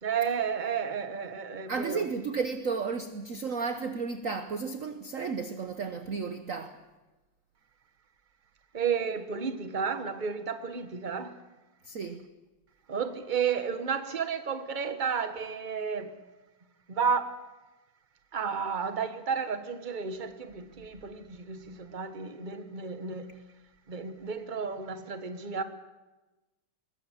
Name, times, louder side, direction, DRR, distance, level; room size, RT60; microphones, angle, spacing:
voice 1, 0.0-2.0 8.7-11.4 12.9-16.1 16.9-17.4 18.3-23.4 23.9-25.6, right 6 dB, 25° right, 1.4 m, -32 dB
voice 2, 1.7-6.8 11.9-12.2, right 5 dB, 50° right, 1.2 m, -33 dB
22.5 x 20.5 x 7.4 m
omnidirectional pair, 2.2 m